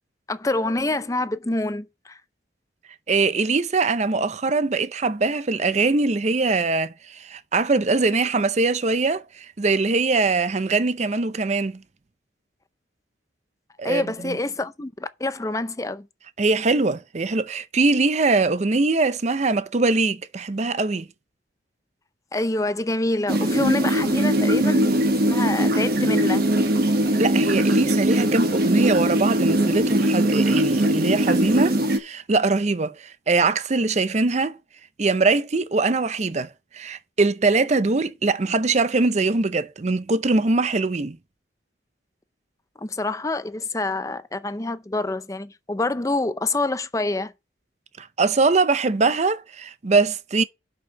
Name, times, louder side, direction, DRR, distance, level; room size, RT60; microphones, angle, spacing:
voice 1, 0.3-2.2 13.8-16.1 22.3-25.0 25.3-26.5 42.8-47.3, left 2 dB, 15° left, 0.5 m, -26 dB
voice 2, 3.1-11.8 13.8-14.4 16.4-21.1 27.2-34.6 35.0-41.2 48.0-50.4, right 3 dB, 35° right, 0.5 m, -22 dB
sound 1, 23.3-32.0, right 1 dB, 55° right, 1.3 m, -21 dB
6.4 x 5.9 x 6.2 m
head